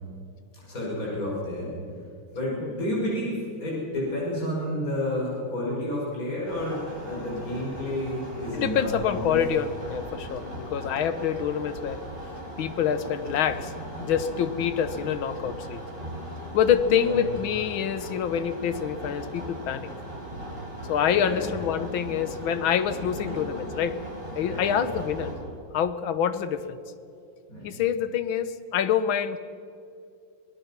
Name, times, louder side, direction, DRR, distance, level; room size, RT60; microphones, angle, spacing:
voice 1, 0.6-1.7 2.3-9.4 16.8-17.2 21.2-21.5 23.2-23.4 24.5-24.7 27.5-27.7, left 1 dB, 40° left, -5 dB, 6.6 m, -30 dB
sound 1, 6.5-25.3, equal, 25° right, 7.4 m, -38 dB
voice 2, 8.5-12.0 12.6-13.7 14.0-15.8 16.5-19.9 20.8-24.0 24.4-25.3 25.7-26.8 27.6-29.4, left 8 dB, 80° left, 12 dB, 1.8 m, -26 dB
26.0 x 19.0 x 6.0 m, 2.5 s
omnidirectional pair, 2.2 m